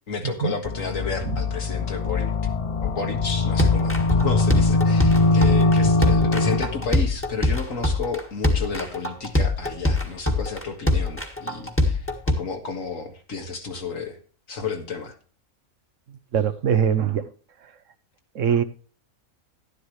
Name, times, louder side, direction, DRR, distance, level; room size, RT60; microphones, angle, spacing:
voice 1, 0.1-2.3 2.8-14.2 14.5-15.2, left 4 dB, 65° left, 2.1 m, -31 dB
sound 1, 0.6-7.0, left 3 dB, 50° left, 0.4 m, -21 dB
sound 2, 3.6-12.3, left 2 dB, 10° left, 1.6 m, -23 dB
voice 2, 16.3-17.3 17.6-17.7 18.3-18.6, right 8 dB, 65° right, 1.1 m, -22 dB
11.5 x 11.5 x 3.2 m
omnidirectional pair, 1.5 m